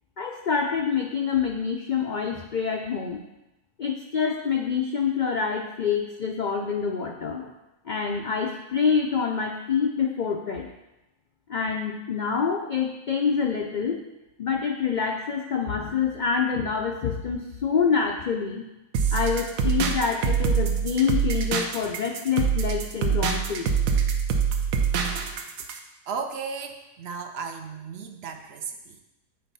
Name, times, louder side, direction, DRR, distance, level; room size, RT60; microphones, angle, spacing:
voice 1, 0.2-3.2 3.8-7.5 7.9-10.7 11.5-14.0 14.4-18.6 19.1-23.7, left 6 dB, 70° left, 1 dB, 0.4 m, -26 dB
sound 1, 18.9-25.8, right 6 dB, 85° right, 1.1 m, -25 dB
voice 2, 26.1-29.0, right 5 dB, 60° right, 6 dB, 0.7 m, -35 dB
7.8 x 4.5 x 4.0 m, 0.98 s
omnidirectional pair, 1.5 m